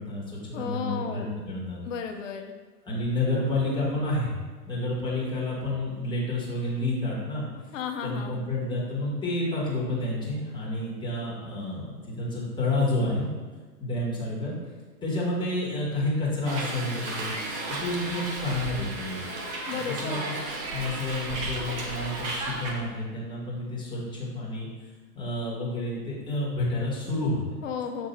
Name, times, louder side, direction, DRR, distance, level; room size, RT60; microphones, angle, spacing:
voice 1, 0.0-1.8 2.9-4.3 4.7-7.4 8.0-13.3 13.8-14.5 15.0-17.3 17.7-19.2 19.7-20.3 20.7-24.7 25.1-27.6, left 2 dB, 10° left, -6 dB, 1.4 m, -29 dB
voice 2, 0.5-1.3 1.8-2.5 7.7-8.4 19.7-20.3 27.6-28.1, left 7 dB, 50° left, 4 dB, 0.8 m, -33 dB
Hiss, 16.4-22.7, right 2 dB, 20° right, 0.6 m, -34 dB
6.9 x 3.4 x 4.3 m, 1.4 s
figure-of-eight pair, 115°, 50 cm